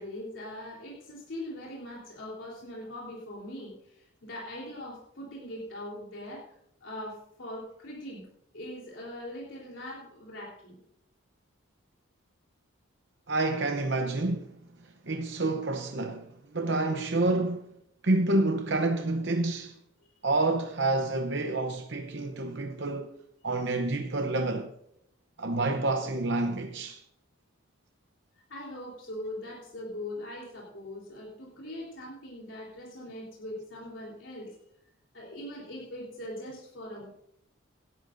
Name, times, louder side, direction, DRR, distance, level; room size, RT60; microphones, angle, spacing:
voice 1, 0.0-8.3 8.5-10.8 28.5-34.6 35.1-37.1, left 1 dB, 65° left, 3.6 m, -41 dB
voice 2, 13.3-14.6 15.1-17.7 18.0-19.8 20.2-23.1 23.4-24.7 25.4-27.0, right 2 dB, 55° right, 0.8 m, -28 dB
18.0 x 12.5 x 2.6 m
head